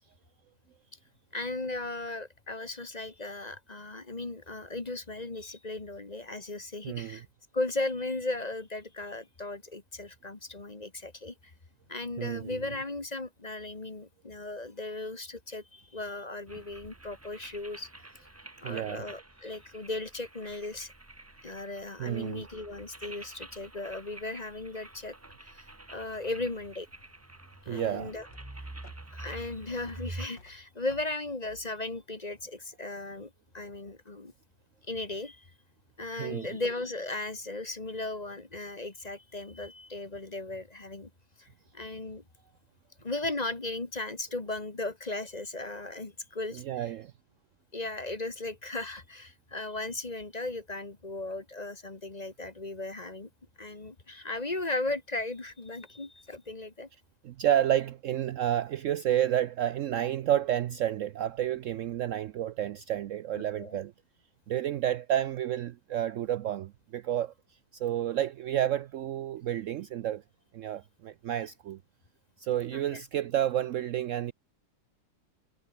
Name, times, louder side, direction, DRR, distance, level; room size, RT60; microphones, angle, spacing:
voice 1, 1.3-7.2 7.5-11.3 11.9-17.9 18.6-20.9 21.4-26.9 27.6-28.3 29.1-34.3 34.9-35.5 36.0-41.1 41.4-41.5 41.7-42.2 43.0-46.9 47.7-53.3 53.6-56.9 63.3-63.8 72.7-73.0, left 2 dB, 25° left, 1.7 m, -37 dB
voice 2, 6.8-7.2 12.2-12.6 18.6-19.1 22.0-22.5 27.7-28.1 36.2-36.5 46.5-47.1 57.2-63.9 64.5-67.3 67.7-70.2 70.5-71.8 72.4-74.3, right 11 dB, 85° right, 0.7 m, -30 dB
sound 1, 16.5-30.3, right 2 dB, 10° right, 0.7 m, -47 dB
sound 2, 26.8-32.9, left 3 dB, 75° left, 4.8 m, -58 dB
omnidirectional pair, 1.9 m